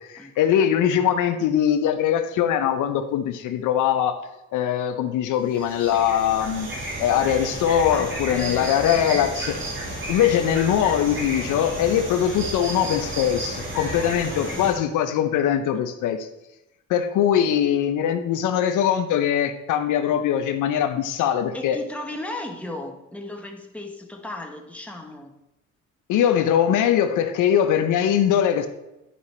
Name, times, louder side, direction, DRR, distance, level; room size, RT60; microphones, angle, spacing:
voice 1, 0.0-4.2 4.5-6.7 7.0-9.6 10.1-16.3 16.9-21.8 26.1-28.7, left 9 dB, 85° left, 8 dB, 0.7 m, -22 dB
sound 1, 5.4-14.7, right 1 dB, 40° right, 2.6 m, -32 dB
voice 2, 7.9-9.3 14.3-14.9 21.5-25.3, left 1 dB, 5° left, 3 dB, 1.3 m, -36 dB
10.0 x 5.0 x 4.3 m, 0.93 s
cardioid pair, 90°, 30 cm